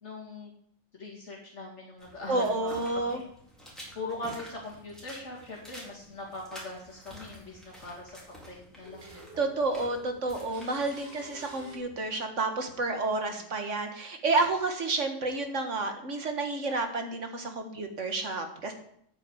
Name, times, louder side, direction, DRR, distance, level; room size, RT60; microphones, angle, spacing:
voice 1, 0.0-0.5 0.9-3.2 3.9-8.1 8.5-9.4 13.2-13.3, left 2 dB, 65° left, -5 dB, 2.7 m, -41 dB
sound 1, 2.0-12.0, equal, ahead, 4.3 m, -50 dB
voice 2, 2.3-3.2 9.0-18.7, right 3 dB, 70° right, 5 dB, 2.1 m, -30 dB
sound 2, 7.1-7.2 7.7-8.5 8.8-11.8, right 1 dB, 45° right, 4.5 m, -51 dB
9.7 x 9.2 x 8.1 m, 0.70 s
omnidirectional pair, 1.3 m